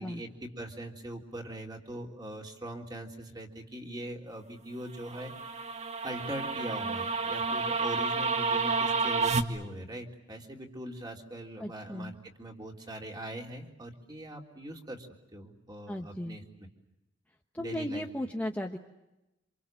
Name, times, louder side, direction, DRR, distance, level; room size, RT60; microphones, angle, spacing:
voice 1, 0.0-5.3 6.0-12.1 12.4-16.7 17.6-18.1, right 1 dB, 20° right, 1 dB, 3.4 m, -41 dB
sound 1, 5.0-9.4, right 4 dB, 35° right, 1.6 m, -30 dB
voice 2, 11.6-12.1 15.9-16.4 17.5-18.8, left 1 dB, 10° left, 2 dB, 1.1 m, -35 dB
27.5 x 27.0 x 7.6 m, 0.96 s
head